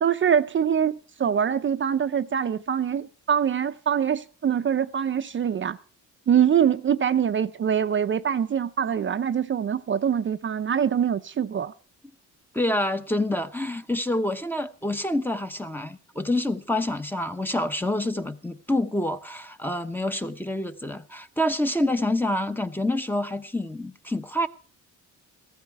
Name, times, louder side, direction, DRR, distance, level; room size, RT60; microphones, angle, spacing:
voice 1, 0.0-5.8 6.3-11.7, right 8 dB, 40° right, 0.6 m, -24 dB
voice 2, 12.5-24.5, left 1 dB, 5° left, 0.9 m, -27 dB
15.5 x 14.0 x 4.7 m
cardioid pair, 100°, 32 cm